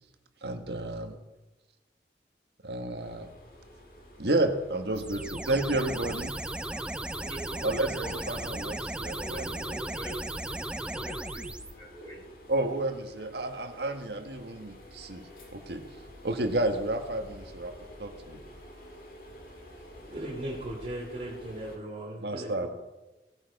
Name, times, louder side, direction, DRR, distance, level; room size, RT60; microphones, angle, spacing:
voice 1, 0.4-1.1 2.6-3.3 4.2-6.3 7.6-9.7 12.5-15.2 15.5-15.8 16.2-17.7 18.0-18.4 22.2-22.7, right 2 dB, 70° right, 6 dB, 1.5 m, -31 dB
sound 1, 3.0-21.8, equal, 50° left, 2.3 m, -50 dB
sound 2, 4.9-11.7, right 1 dB, 5° right, 0.4 m, -36 dB
voice 2, 6.7-7.7 8.0-8.1 9.2-10.1 10.5-12.2, equal, 20° left, -5 dB, 4.7 m, -44 dB
voice 3, 20.1-22.7, right 1 dB, 40° right, -5 dB, 2.8 m, -37 dB
17.0 x 8.8 x 5.4 m, 1.1 s
head